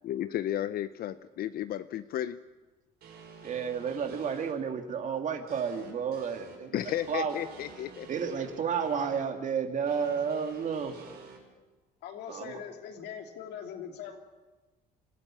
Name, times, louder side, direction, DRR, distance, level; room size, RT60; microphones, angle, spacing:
voice 1, 0.0-2.4 6.7-8.1, left 12 dB, 60° left, 13 dB, 0.7 m, -33 dB
sound 1, 3.0-4.5 5.5-9.2 9.9-11.4, right 5 dB, 70° right, 5.4 m, -50 dB
voice 2, 3.4-6.8 7.1-7.3 8.1-10.9 12.3-12.6, right 6 dB, 50° right, 6 dB, 2.4 m, -31 dB
voice 3, 12.0-14.2, left 8 dB, 80° left, 4 dB, 3.0 m, -41 dB
25.0 x 14.0 x 8.8 m, 1.2 s
cardioid pair, 110°, 17 cm